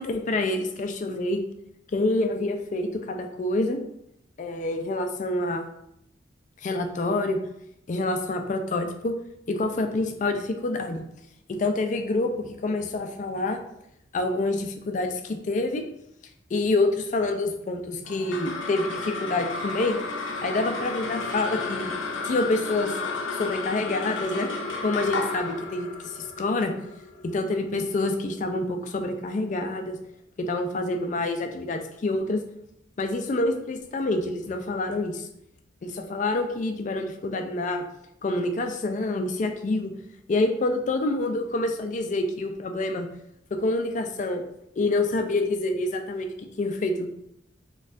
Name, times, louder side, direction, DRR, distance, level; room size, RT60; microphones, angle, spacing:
voice 1, 0.0-1.4 1.9-3.8 4.4-5.7 6.6-7.4 7.9-9.1 9.5-11.0 11.5-13.6 14.1-15.9 16.5-20.0 20.4-21.9 22.2-23.0 23.3-24.5 24.8-26.7 27.2-30.0 30.4-32.4 33.0-35.3 35.8-37.8 38.2-39.9 40.3-43.1 43.5-44.4 44.8-47.1, left 2 dB, 40° left, 5 dB, 0.3 m, -27 dB
sound 1, 18.1-28.7, left 3 dB, 80° left, 0.6 m, -33 dB
4.1 x 2.3 x 2.5 m, 0.78 s
head